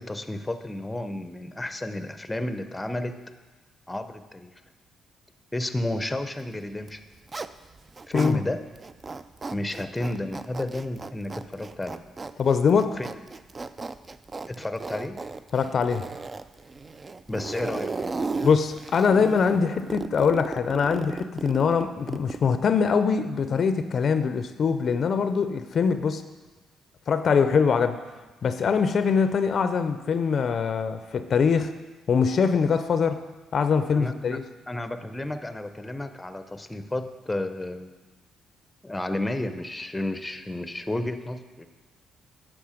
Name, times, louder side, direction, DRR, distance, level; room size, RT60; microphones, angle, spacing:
voice 1, 0.0-3.2 3.9-4.5 5.5-7.0 8.1-8.6 9.5-12.0 13.0-13.1 14.5-15.2 17.3-17.9 33.9-34.4 34.7-37.9 38.8-41.7, left 1 dB, 10° left, 9 dB, 0.6 m, -32 dB
Zipper (clothing), 6.8-8.4 8.8-22.5, right 3 dB, 30° right, 0.3 m, -36 dB
voice 2, 12.4-13.0 15.5-16.1 18.4-26.2 27.1-28.0 28.4-31.7 32.1-33.2 33.5-34.4, left 6 dB, 55° left, 10 dB, 0.5 m, -23 dB
9.6 x 6.5 x 5.0 m, 1.2 s
cardioid pair, 90°, 0 cm